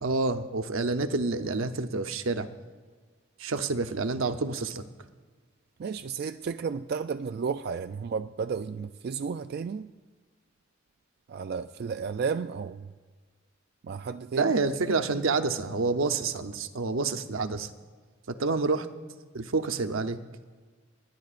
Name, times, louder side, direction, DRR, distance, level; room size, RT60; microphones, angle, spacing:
voice 1, 0.0-2.5 3.4-4.8 14.4-17.7 18.3-18.9 19.3-20.2, right 3 dB, 80° right, 9 dB, 0.8 m, -28 dB
voice 2, 5.8-9.9 11.3-12.9 13.8-14.5, right 5 dB, 50° right, 9 dB, 0.3 m, -33 dB
30.0 x 10.5 x 2.5 m, 1.5 s
head